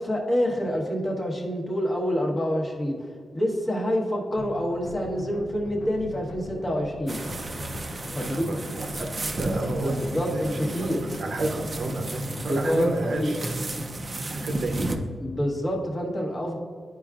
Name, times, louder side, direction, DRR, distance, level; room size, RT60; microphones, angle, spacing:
voice 1, 0.0-7.2 8.1-8.6 9.8-11.0 12.5-12.9 13.2-13.3 13.8-13.9 14.3-14.5 15.2-16.6, equal, 20° left, -1 dB, 1.2 m, -27 dB
sound 1, 4.4-12.0, left 1 dB, 80° left, 1.0 m, -40 dB
sound 2, 7.1-15.0, right 2 dB, 30° right, 0.5 m, -33 dB
voice 2, 8.2-10.0 10.3-13.5 14.3-15.1, right 2 dB, 60° right, 3 dB, 0.8 m, -31 dB
12.0 x 4.6 x 2.4 m, 2.1 s
wide cardioid pair, 165°, 0 cm